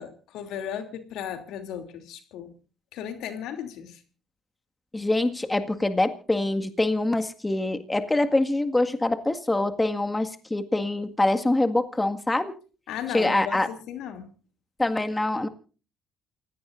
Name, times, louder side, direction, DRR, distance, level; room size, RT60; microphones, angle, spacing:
voice 1, 0.0-2.5 2.9-4.0 12.9-14.3, left 9 dB, 75° left, 7 dB, 2.9 m, -36 dB
voice 2, 4.9-12.5 13.1-13.7 14.8-15.5, left 2 dB, 15° left, 7 dB, 1.9 m, -24 dB
28.5 x 17.0 x 2.6 m, 0.37 s
supercardioid pair, 70°, 0 cm